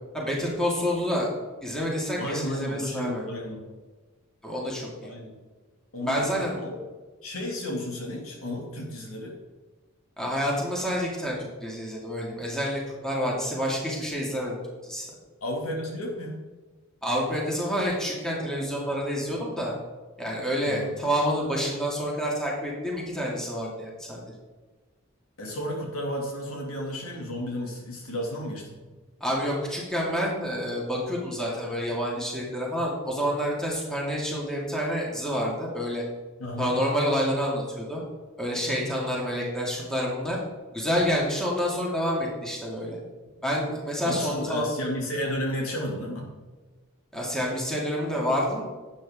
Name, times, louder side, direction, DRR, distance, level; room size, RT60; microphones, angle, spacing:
voice 1, 0.1-1.3 1.6-3.2 4.4-5.1 6.0-6.6 10.2-14.6 14.8-15.1 17.0-19.7 20.2-24.2 29.2-36.0 36.6-38.0 38.4-40.4 40.7-43.0 43.4-44.7 47.1-48.6, equal, 5° left, -4 dB, 2.3 m, -28 dB
voice 2, 2.2-3.6 5.0-5.4 5.9-6.8 7.2-9.4 15.4-16.4 20.6-20.9 25.4-28.8 36.4-36.7 44.0-46.3, left 1 dB, 75° left, -1 dB, 2.6 m, -33 dB
11.5 x 8.6 x 3.7 m, 1.3 s
head